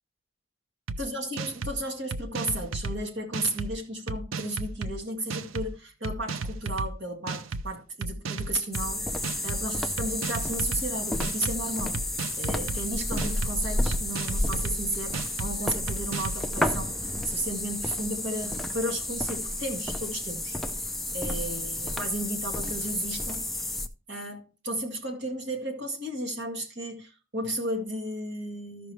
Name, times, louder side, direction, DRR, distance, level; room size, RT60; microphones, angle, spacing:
sound 1, 0.9-1.0 1.4-1.8 2.1-3.0 3.3-3.7 4.1-4.9 5.3-5.7 6.0-6.9 7.3-7.6 8.0-8.9 9.2-9.6 10.0-10.8 11.2-11.6 11.9-12.8 13.2-13.5 13.9-14.8 15.1-15.5 15.9-16.4, right 3 dB, 85° right, 0.6 m, -33 dB
voice 1, 1.0-12.0 12.4-16.9 17.3-20.6 21.1-23.7 24.1-28.9, right 1 dB, 60° right, 2.1 m, -34 dB
sound 2, 8.7-23.9, left 1 dB, ahead, 0.5 m, -31 dB
13.5 x 5.9 x 3.1 m
head